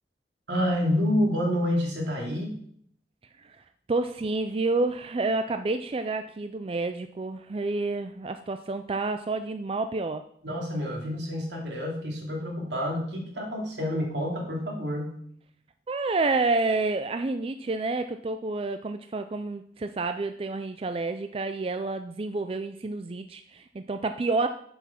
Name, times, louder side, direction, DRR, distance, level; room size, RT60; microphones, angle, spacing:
voice 1, 0.5-2.6 10.4-15.2, left 1 dB, 80° right, -1 dB, 2.7 m, -28 dB
voice 2, 3.9-10.2 15.9-24.5, right 3 dB, 30° right, 9 dB, 0.4 m, -29 dB
7.2 x 7.1 x 5.8 m, 0.64 s
head